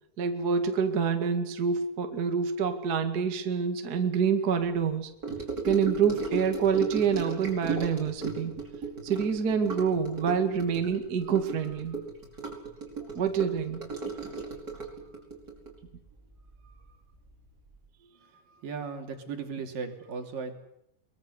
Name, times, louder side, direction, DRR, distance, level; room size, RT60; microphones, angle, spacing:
voice 1, 0.2-5.1 5.6-8.5 9.0-12.0 13.1-13.8, right 6 dB, 40° right, 6 dB, 1.4 m, -27 dB
Gurgling / Sink (filling or washing) / Trickle dribble, 5.2-16.9 17.1-17.5 17.7-17.8, right 4 dB, 20° right, 5.4 m, -36 dB
voice 2, 18.6-20.6, right 5 dB, 55° right, 5 dB, 4.3 m, -36 dB
23.0 x 22.0 x 8.0 m, 0.79 s
omnidirectional pair, 4.9 m